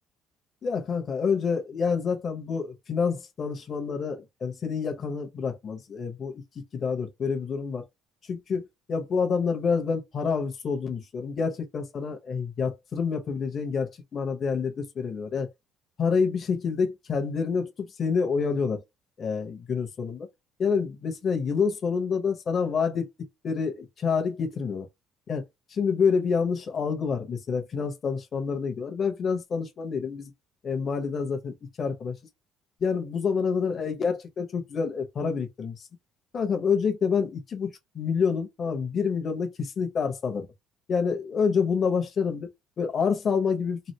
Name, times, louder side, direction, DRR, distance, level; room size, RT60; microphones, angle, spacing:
voice 1, 0.6-7.8 8.3-15.5 16.0-18.8 19.2-20.3 20.6-24.9 25.3-25.4 25.7-30.3 30.6-32.2 32.8-35.9 36.3-40.5 40.9-42.5 42.8-43.8, left 5 dB, 35° left, 0.8 m, -28 dB
3.2 x 2.4 x 2.8 m
cardioid pair, 150°, 0 cm